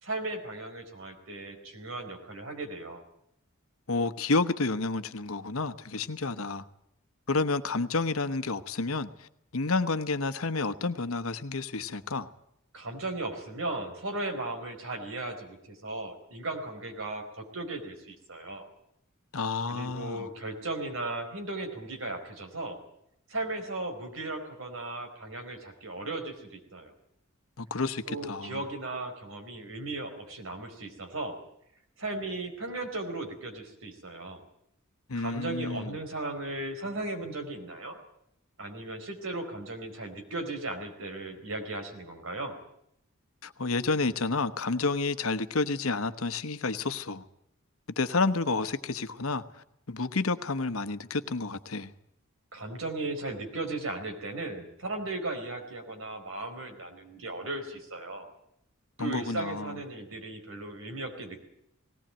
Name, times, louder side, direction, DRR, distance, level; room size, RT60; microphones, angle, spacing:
voice 1, 0.0-3.0 12.7-18.7 19.7-22.8 23.3-26.9 28.1-31.4 32.0-34.4 35.1-38.0 38.6-42.6 52.5-58.3 59.0-61.4, right 2 dB, 65° right, 4.5 m, -36 dB
voice 2, 3.9-6.6 7.3-12.3 19.3-20.3 27.6-28.6 35.1-35.9 43.4-47.2 48.0-49.4 49.9-51.9 59.0-59.8, left 3 dB, 75° left, 1.1 m, -30 dB
19.0 x 18.5 x 8.9 m
head